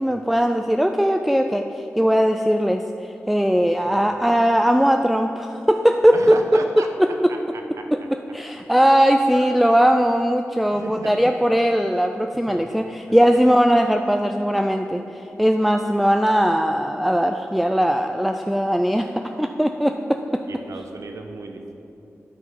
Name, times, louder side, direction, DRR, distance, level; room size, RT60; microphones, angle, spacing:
voice 1, 0.0-1.7 2.0-7.3 7.9-20.4, equal, ahead, 5 dB, 0.3 m, -19 dB
voice 2, 6.1-6.9 7.3-7.4 7.8-7.9 9.4-9.8 10.7-11.3 12.5-12.9 20.5-21.7, right 3 dB, 90° right, 4 dB, 0.8 m, -35 dB
9.6 x 5.6 x 5.5 m, 2.9 s
cardioid pair, 65°, 5 cm